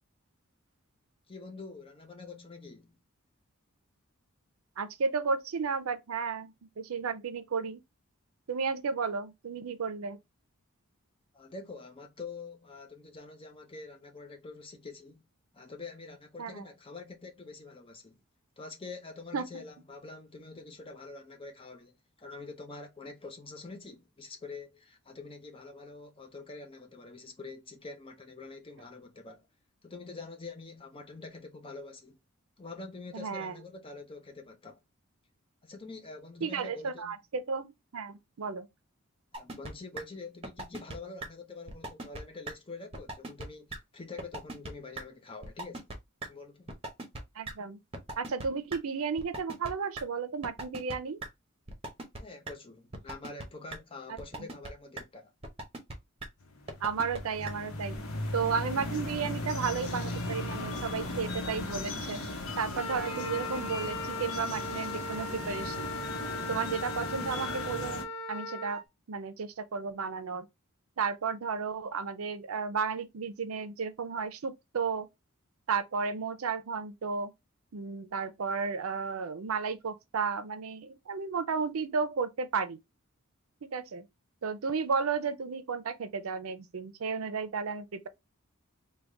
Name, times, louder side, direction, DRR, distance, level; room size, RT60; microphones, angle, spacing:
voice 1, 1.3-2.9 11.3-15.2 15.5-18.2 18.6-29.5 29.8-32.2 32.6-34.8 35.6-37.2 39.3-45.8 46.3-46.7 52.2-55.3, left 3 dB, 25° left, 0.6 m, -46 dB
voice 2, 4.8-7.8 8.5-10.2 16.4-16.6 19.3-19.6 33.1-33.6 36.4-38.7 47.4-47.8 48.2-51.2 56.8-58.0 58.3-62.2 62.6-65.9 66.5-68.0 68.3-68.8 69.1-70.5 71.0-75.1 75.7-77.3 77.7-82.8 83.6-84.1 84.4-88.1, right 5 dB, 80° right, 0.5 m, -33 dB
sound 1, 39.3-39.7 40.0-40.1 40.4-41.0 41.2-41.3 41.7-42.2 42.5-42.6 42.9-43.5 43.7-43.8 44.2-44.7 45.0-45.1 45.4-46.0 46.2-46.3 46.7-47.2 47.5-47.6 47.9-48.8 49.2-50.0 50.4-51.0 51.2-51.3 51.7-52.2 52.5-52.6 52.9-53.4 53.7-53.8 54.2-54.7 55.0-55.1 55.4-55.9 56.2-56.3 56.7-57.2 57.5-57.6 57.9-58.0, right 2 dB, 25° right, 0.8 m, -39 dB
sound 2, 56.4-68.0, left 2 dB, 80° left, 0.9 m, -37 dB
Wind instrument woodwind instrument, 62.7-68.8, left 2 dB, 5° left, 0.9 m, -38 dB
3.5 x 2.3 x 3.7 m
head